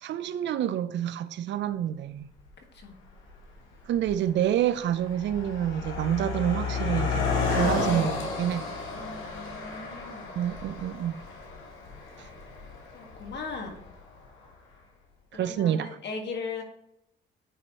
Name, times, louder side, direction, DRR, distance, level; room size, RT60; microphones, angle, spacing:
voice 1, 0.0-2.3 3.9-8.7 10.4-11.2 12.2-12.3 15.3-15.9, right 10 dB, 65° right, 0.5 m, -28 dB
Car passing by, 2.4-2.5 3.3-3.5 3.8-14.2, left 4 dB, 80° left, 1.6 m, -32 dB
voice 2, 8.9-10.4 12.9-13.8 15.3-16.6, left 4 dB, 60° left, 1.6 m, -39 dB
9.2 x 4.4 x 2.9 m
cardioid pair, 90°, 20 cm